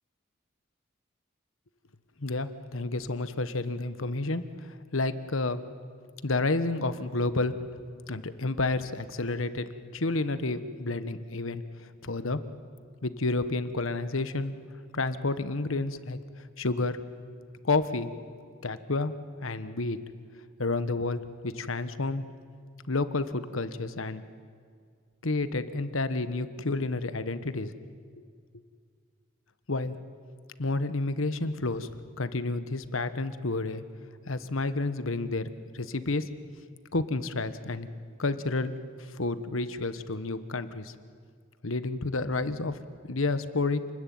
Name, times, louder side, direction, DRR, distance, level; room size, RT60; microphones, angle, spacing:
voice 1, 2.2-5.6 6.2-7.6 8.1-12.4 13.0-14.5 14.9-16.2 16.6-17.0 17.6-18.1 18.6-19.1 19.4-20.0 20.6-22.2 22.9-24.2 25.2-27.7 29.7-30.0 30.6-31.9 32.2-33.8 34.3-35.5 35.7-36.3 36.9-37.9 38.2-38.7 39.2-40.9 41.6-42.8 43.1-43.9, left 3 dB, 75° left, 12 dB, 1.3 m, -30 dB
28.5 x 20.5 x 9.4 m, 2.1 s
head